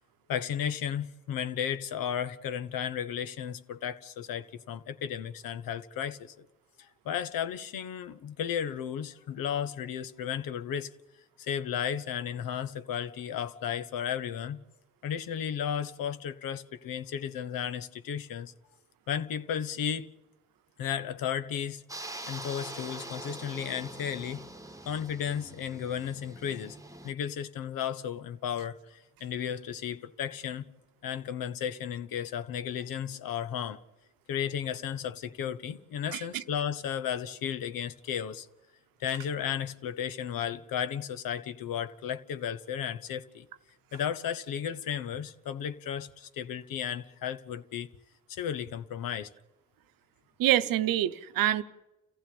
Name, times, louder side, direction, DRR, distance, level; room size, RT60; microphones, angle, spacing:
voice 1, 0.3-6.4 6.8-10.9 11.4-14.6 15.0-18.5 19.1-20.1 20.8-21.8 22.3-24.4 24.8-26.8 27.0-30.7 31.0-33.8 34.3-38.5 39.0-43.5 43.9-47.9 48.3-49.3, left 9 dB, 85° left, 1.0 m, -34 dB
sound 1, 21.9-27.1, right 2 dB, 10° right, 1.3 m, -44 dB
voice 2, 36.1-36.4 50.4-51.6, right 12 dB, 90° right, 0.9 m, -26 dB
28.5 x 15.5 x 8.6 m
supercardioid pair, 45°, 33 cm